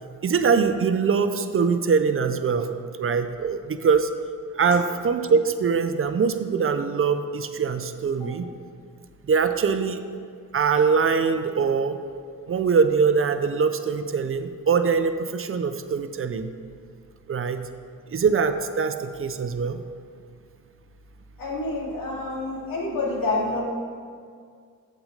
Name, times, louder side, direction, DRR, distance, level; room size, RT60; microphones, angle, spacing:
voice 1, 0.2-4.1 4.5-8.5 9.3-10.0 10.5-12.0 12.5-16.5 17.3-17.6 18.1-19.8, right 5 dB, 40° right, 9 dB, 0.5 m, -23 dB
voice 2, 21.4-23.6, left 2 dB, 85° left, -4 dB, 2.2 m, -28 dB
7.8 x 6.1 x 5.1 m, 2.2 s
cardioid pair, 90°, 33 cm